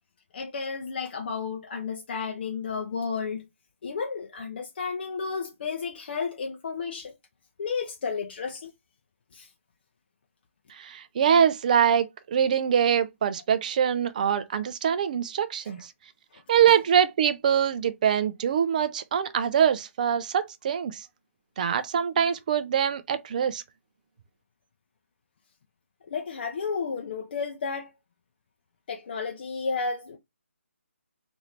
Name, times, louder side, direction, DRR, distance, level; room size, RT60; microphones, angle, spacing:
voice 1, 0.3-3.4 3.8-7.1 7.6-8.7 9.3-9.5 15.7-15.8 26.1-27.9 28.9-30.2, left 5 dB, 45° left, 0.5 m, -32 dB
voice 2, 10.8-15.8 16.5-21.0 21.6-23.6, right 8 dB, 35° right, 0.4 m, -24 dB
2.8 x 2.5 x 3.1 m
figure-of-eight pair, 145°, 7 cm